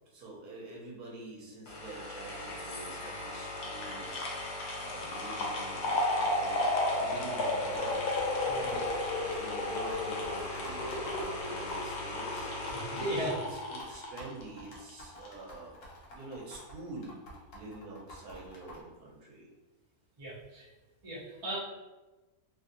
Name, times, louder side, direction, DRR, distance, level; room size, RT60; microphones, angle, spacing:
voice 1, 0.1-8.0 8.5-15.7 16.1-17.2 17.5-19.5, right 3 dB, 75° right, -4 dB, 1.3 m, -47 dB
sound 1, 1.7-14.9 15.3-15.4, left 2 dB, 85° left, 1.2 m, -34 dB
sound 2, 7.6-18.8, left 1 dB, 55° left, 0.7 m, -49 dB
voice 2, 8.4-8.8 12.7-13.3 20.2-20.6 21.0-21.6, right 1 dB, 40° right, -7 dB, 0.4 m, -37 dB
3.1 x 2.5 x 2.6 m, 1.2 s
omnidirectional pair, 1.6 m